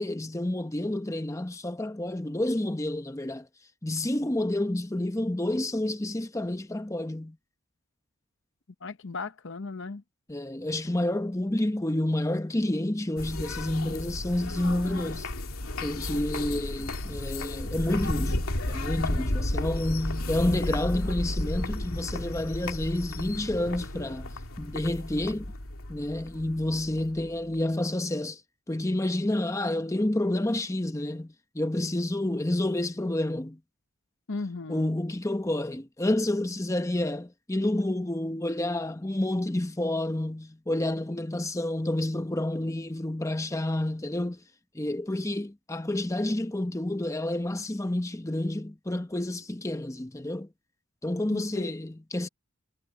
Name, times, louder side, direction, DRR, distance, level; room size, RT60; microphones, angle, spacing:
voice 1, 0.0-3.5 3.8-7.4 10.3-15.3 15.8-24.3 24.6-25.5 25.9-28.4 28.7-33.6 34.7-44.4 44.7-50.5 51.0-52.3, left 1 dB, 15° left, 0.8 m, -29 dB
voice 2, 8.8-10.0 34.3-35.0 51.3-51.7, left 3 dB, 60° left, 0.8 m, -36 dB
sound 1, 13.2-27.6, left 1 dB, 80° left, 2.7 m, -33 dB
head